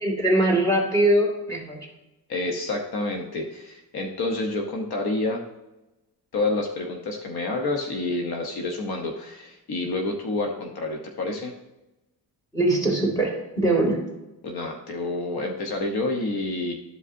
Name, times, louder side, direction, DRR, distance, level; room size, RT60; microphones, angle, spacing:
voice 1, 0.0-1.8 12.5-14.0, right 1 dB, 10° left, -2 dB, 2.5 m, -22 dB
voice 2, 2.3-5.4 6.3-11.5 14.4-16.7, left 2 dB, 65° left, 2 dB, 1.1 m, -28 dB
12.5 x 5.1 x 2.7 m, 0.99 s
cardioid pair, 110°, 40 cm